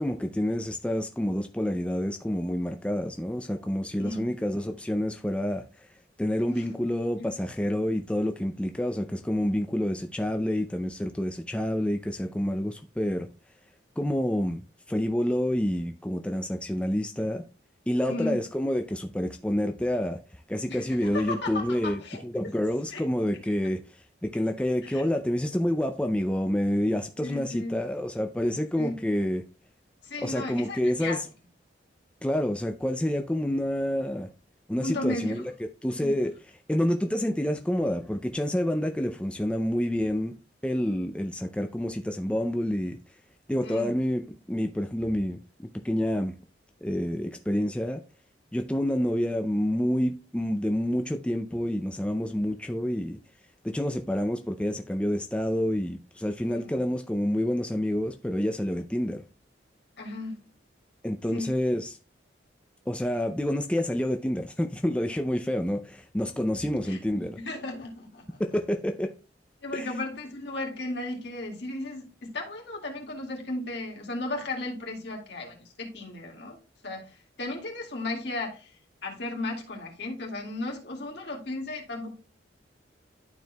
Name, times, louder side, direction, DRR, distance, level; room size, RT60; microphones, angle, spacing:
voice 1, 0.0-5.9 6.2-13.3 14.0-17.4 17.9-29.4 30.2-31.3 32.2-34.3 34.7-35.5 35.8-36.3 36.7-40.4 40.6-43.0 43.5-45.4 45.8-46.3 46.8-48.0 48.5-53.2 53.6-59.2 61.0-62.0 62.9-67.4 68.4-69.1 69.7-69.9, equal, 5° left, 0.4 m, -28 dB
voice 2, 18.1-18.4 20.7-22.5 22.9-23.1 24.8-25.0 27.2-27.8 28.8-29.1 30.0-31.2 34.8-35.4 35.9-36.2 43.6-44.0 56.4-56.8 60.0-60.4 61.3-61.5 66.4-68.4 69.6-76.6 76.8-78.7 79.0-82.1, left 2 dB, 60° left, 2.0 m, -35 dB
12.0 x 4.6 x 2.2 m
head